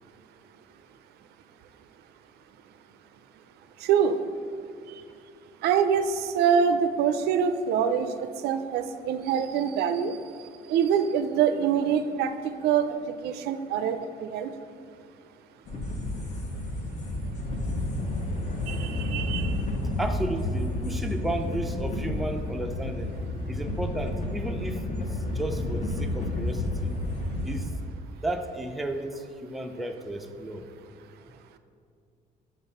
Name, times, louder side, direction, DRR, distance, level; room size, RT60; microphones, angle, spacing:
voice 1, 3.8-4.2 5.6-10.2 10.7-12.3 12.6-14.5 18.7-19.6, right 7 dB, 75° right, 10 dB, 0.4 m, -25 dB
sound 1, 15.7-27.7, left 1 dB, 45° left, 0.8 m, -30 dB
voice 2, 20.0-23.2 23.5-25.1 25.3-26.9 27.4-27.7 28.2-30.7, right 1 dB, ahead, 4 dB, 0.4 m, -33 dB
5.8 x 4.0 x 5.2 m, 2.3 s
cardioid pair, 110°, 17 cm